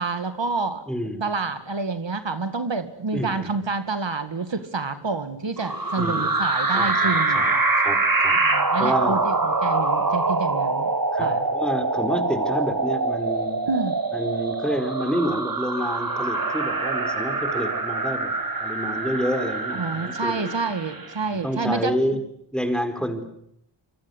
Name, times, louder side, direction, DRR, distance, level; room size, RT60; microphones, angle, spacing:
voice 1, 0.0-0.8 1.1-7.6 8.4-10.9 11.2-11.5 13.6-14.0 19.7-22.0, right 4 dB, 75° right, 10 dB, 2.2 m, -28 dB
voice 2, 0.9-1.2 3.1-3.5 6.0-6.3 6.7-7.5 7.8-8.4 8.8-9.2 11.1-13.6 14.1-18.3 18.6-20.5 21.4-22.2 22.5-23.3, equal, ahead, 8 dB, 4.6 m, -28 dB
sound 1, 5.6-21.2, right 3 dB, 50° right, 3.9 m, -24 dB
26.5 x 24.0 x 8.1 m, 0.74 s
wide cardioid pair, 65°, 45 cm